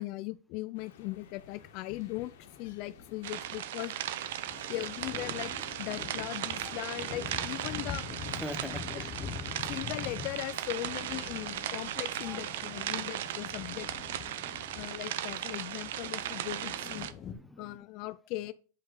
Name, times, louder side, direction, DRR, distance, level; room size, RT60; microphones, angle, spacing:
voice 1, 0.0-3.9 4.7-5.5 5.8-8.1 8.6-9.1 9.5-13.9 14.7-17.1 17.6-18.5, left 17 dB, 50° left, 0.4 m, -39 dB
sound 1, 0.7-12.2, left 6 dB, 75° left, 1.5 m, -57 dB
sound 2, 1.5-1.8 2.3-17.3, left 7 dB, 30° left, 1.1 m, -45 dB
sound 3, 3.2-17.1, right 12 dB, 65° right, 0.7 m, -37 dB
voice 2, 4.4-4.7 8.4-9.1 12.2-12.4 14.3-14.9 17.0-17.8, left 1 dB, 5° left, 0.7 m, -45 dB
8.0 x 5.2 x 3.9 m
hypercardioid pair, 120°, 0 cm